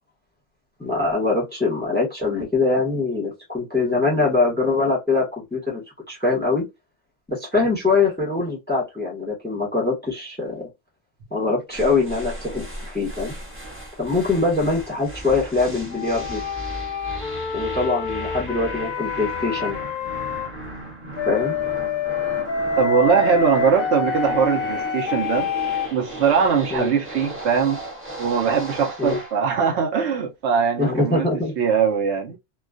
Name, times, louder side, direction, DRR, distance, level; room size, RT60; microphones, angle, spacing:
voice 1, 0.8-5.8 6.1-6.7 7.3-10.7 11.3-13.3 14.0-16.4 17.5-19.8 21.2-21.6 26.7-26.9 29.0-29.2 30.8-31.5, left 3 dB, 10° left, 0.8 m, -23 dB
sound 1, 11.7-29.4, right 1 dB, 15° right, 0.6 m, -36 dB
sound 2, 15.9-20.5 21.2-25.9, left 5 dB, 55° left, 0.6 m, -27 dB
voice 2, 22.8-27.8 28.2-31.3 31.6-32.4, right 6 dB, 70° right, 0.9 m, -21 dB
2.3 x 2.2 x 2.4 m
omnidirectional pair, 1.2 m